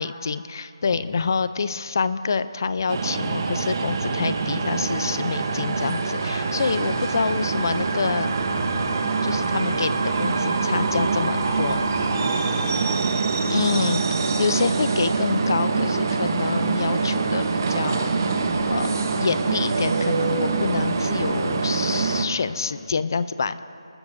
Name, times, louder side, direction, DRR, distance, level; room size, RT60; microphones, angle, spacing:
voice 1, 0.0-8.3 9.2-11.8 13.5-14.0 14.4-18.9 19.2-23.6, left 5 dB, 40° left, 14 dB, 0.4 m, -27 dB
voice 2, 0.8-1.2 6.7-7.2 12.1-13.1, left 2 dB, 15° left, 0 dB, 1.0 m, -39 dB
sound 1, 2.9-22.3, right 4 dB, 40° right, 0.9 m, -24 dB
21.0 x 13.5 x 2.6 m, 2.5 s
figure-of-eight pair, 170°, 3 cm